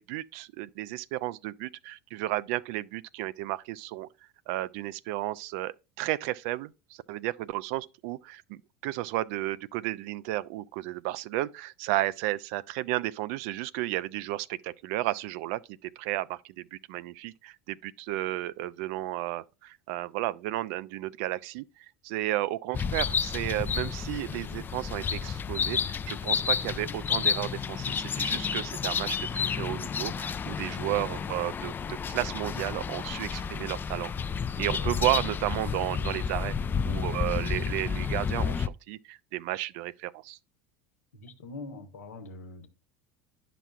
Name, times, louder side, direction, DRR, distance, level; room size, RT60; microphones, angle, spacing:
voice 1, 0.0-4.1 4.5-21.6 22.0-34.1 34.6-36.6 36.8-40.4, right 16 dB, 65° right, 0.4 m, -33 dB
sound 1, 22.7-38.7, left 6 dB, 25° left, 0.4 m, -31 dB
voice 2, 41.1-42.7, left 3 dB, 85° left, 1.1 m, -43 dB
10.5 x 5.9 x 2.3 m
hypercardioid pair, 80°, 8 cm